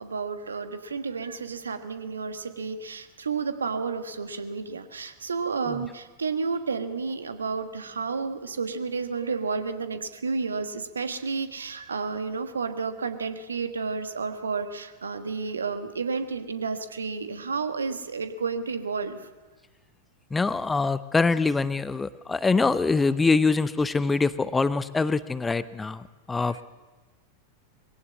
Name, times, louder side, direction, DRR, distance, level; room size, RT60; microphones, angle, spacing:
voice 1, 0.0-19.3 26.5-26.6, right 5 dB, 75° right, 9 dB, 1.4 m, -31 dB
voice 2, 20.3-26.6, left 4 dB, 10° left, 16 dB, 0.6 m, -24 dB
21.5 x 17.0 x 8.4 m, 1.2 s
figure-of-eight pair, 90°, 0 cm